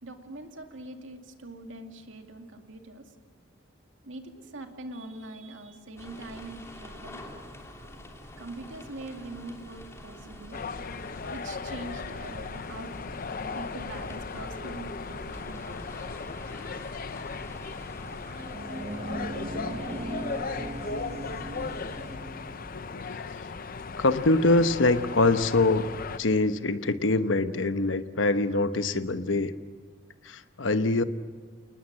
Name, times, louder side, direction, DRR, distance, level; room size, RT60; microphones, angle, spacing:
voice 1, 0.0-3.1 4.0-7.2 8.4-12.9 13.5-15.9 16.2-16.8 17.8-18.6, right 2 dB, 80° right, 5 dB, 2.3 m, -43 dB
sound 1, 6.0-22.2, left 1 dB, 15° left, 3.2 m, -46 dB
sound 2, 10.5-26.2, left 4 dB, 50° left, 0.8 m, -37 dB
sound 3, 18.2-22.9, right 1 dB, 35° right, 1.0 m, -38 dB
voice 2, 22.7-23.2 24.0-25.9 26.2-29.5 30.2-31.0, left 2 dB, 75° left, 10 dB, 1.0 m, -24 dB
28.5 x 19.5 x 7.5 m, 1.5 s
head